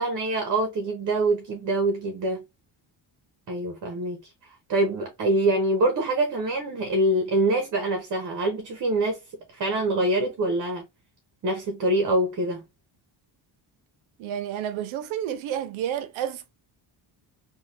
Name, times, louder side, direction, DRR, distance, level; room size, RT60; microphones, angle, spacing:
voice 1, 0.0-2.4 3.5-4.3 4.7-9.2 9.5-10.9 11.4-12.6, right 1 dB, 40° right, 0.8 m, -25 dB
voice 2, 14.2-16.5, right 10 dB, 85° right, 0.7 m, -30 dB
3.1 x 2.3 x 2.7 m
cardioid pair, 150°, 47 cm